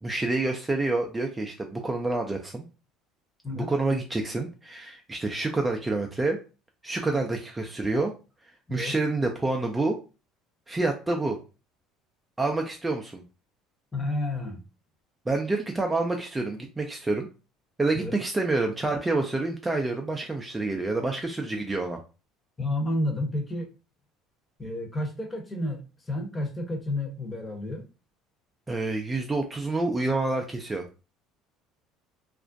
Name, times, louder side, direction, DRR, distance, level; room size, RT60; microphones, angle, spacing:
voice 1, 0.0-2.7 3.6-6.4 6.8-8.1 8.7-10.0 10.7-11.4 12.4-13.2 15.3-17.3 17.8-22.0 28.7-30.8, right 2 dB, 15° right, 2 dB, 0.4 m, -28 dB
voice 2, 13.9-14.6 17.9-18.1 22.6-23.7 24.6-27.8, left 1 dB, 20° left, 2 dB, 0.8 m, -30 dB
2.4 x 2.1 x 2.5 m, 0.32 s
hypercardioid pair, 75°, 0 cm